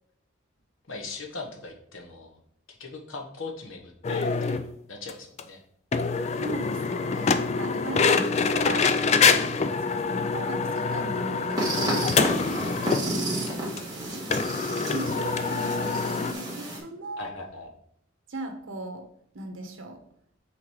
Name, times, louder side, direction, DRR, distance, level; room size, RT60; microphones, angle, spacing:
voice 1, 0.9-2.4 2.7-4.6 4.9-5.6 12.3-12.7 17.2-17.7, left 3 dB, 75° left, 2 dB, 1.3 m, -39 dB
sound 1, 4.0-4.6 5.1-5.2 5.4-5.5 5.9-13.1 13.5-13.6 13.8-13.9 14.3-16.3, left 5 dB, 30° left, 0.3 m, -25 dB
voice 2, 6.3-13.2 14.1-17.3 18.3-19.1 19.3-20.0, right 2 dB, 75° right, 5 dB, 1.2 m, -38 dB
sound 2, 11.6-16.8, right 1 dB, 20° right, 1.8 m, -31 dB
5.8 x 4.0 x 4.7 m, 0.69 s
head